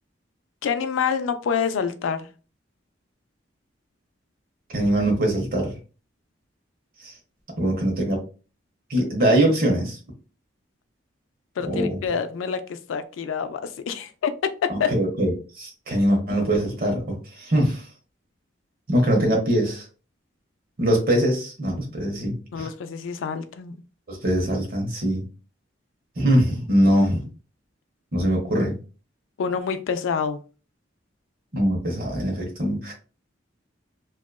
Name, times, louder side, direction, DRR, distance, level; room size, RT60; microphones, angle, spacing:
voice 1, 0.6-2.3 11.6-14.9 22.5-23.8 29.4-30.4, left 6 dB, 85° left, 9 dB, 0.3 m, -27 dB
voice 2, 4.7-5.7 7.0-7.1 7.6-8.2 8.9-10.0 11.6-12.0 14.7-17.8 18.9-19.8 20.8-22.7 24.1-25.2 26.2-27.3 28.1-28.8 31.5-32.9, right 1 dB, 45° right, 1 dB, 0.9 m, -22 dB
2.8 x 2.4 x 2.2 m, 0.35 s
head